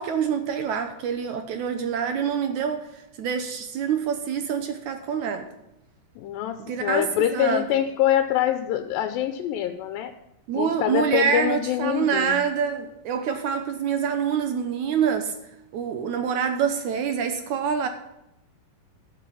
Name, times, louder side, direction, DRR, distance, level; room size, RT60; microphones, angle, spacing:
voice 1, 0.0-5.5 6.7-7.7 10.5-15.3 15.7-17.9, right 7 dB, 70° right, 7 dB, 2.0 m, -26 dB
voice 2, 6.2-10.1 10.6-12.4, left 11 dB, 85° left, 7 dB, 2.4 m, -25 dB
11.5 x 7.5 x 7.0 m, 0.86 s
omnidirectional pair, 4.0 m